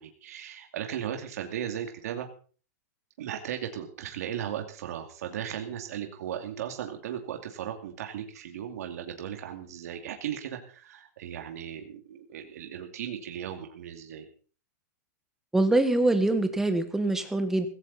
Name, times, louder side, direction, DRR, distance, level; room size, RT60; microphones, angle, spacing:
voice 1, 0.0-2.3 3.2-14.3, right 9 dB, 65° right, 4 dB, 2.5 m, -36 dB
voice 2, 15.5-17.7, right 2 dB, 5° right, 8 dB, 1.4 m, -24 dB
16.5 x 16.0 x 4.1 m, 0.41 s
supercardioid pair, 165°, 9 cm